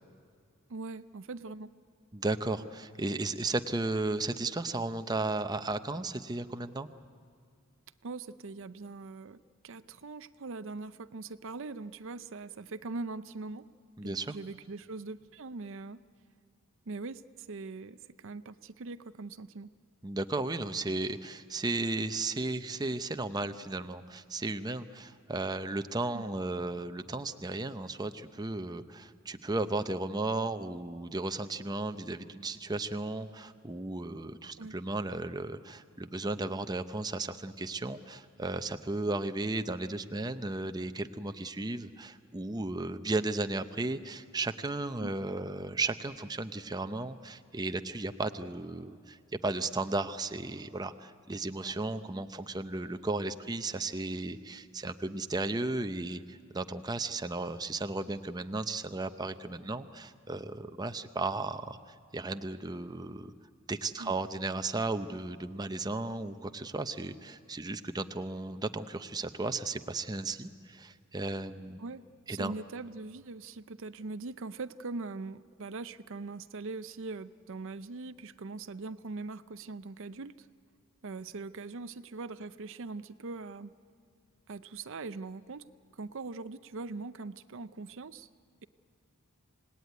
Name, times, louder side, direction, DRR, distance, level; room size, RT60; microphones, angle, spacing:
voice 1, 0.7-1.7 8.0-9.4 9.6-13.7 14.0-16.0 16.9-19.7 26.1-26.2 34.6-34.8 45.0-45.1 64.0-64.1 71.8-80.5 81.0-83.7 84.5-85.6 85.9-88.3, right 3 dB, 60° right, 13 dB, 0.6 m, -41 dB
voice 2, 2.1-6.9 14.0-14.4 20.0-63.3 63.7-71.8 72.3-72.5, right 2 dB, 20° right, 9 dB, 0.6 m, -35 dB
27.0 x 18.5 x 9.4 m, 2.2 s
head